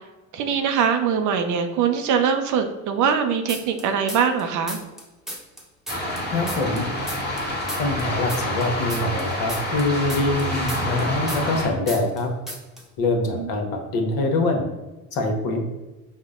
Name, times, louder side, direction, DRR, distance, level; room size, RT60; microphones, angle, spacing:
voice 1, 0.3-4.8 13.2-13.5, right 7 dB, 45° right, 6 dB, 0.6 m, -22 dB
sound 1, 3.5-4.4 4.7-7.4 7.7-11.6 11.9-12.2 12.5-12.8, equal, ahead, 1.0 m, -35 dB
sound 2, 5.9-11.7, left 1 dB, 20° left, 1.5 m, -28 dB
voice 2, 6.3-6.9 7.8-12.3 13.0-13.7 13.9-14.7 15.1-15.6, left 2 dB, 55° left, 3 dB, 1.0 m, -24 dB
5.3 x 2.1 x 3.7 m, 1.1 s
hypercardioid pair, 60°, 44 cm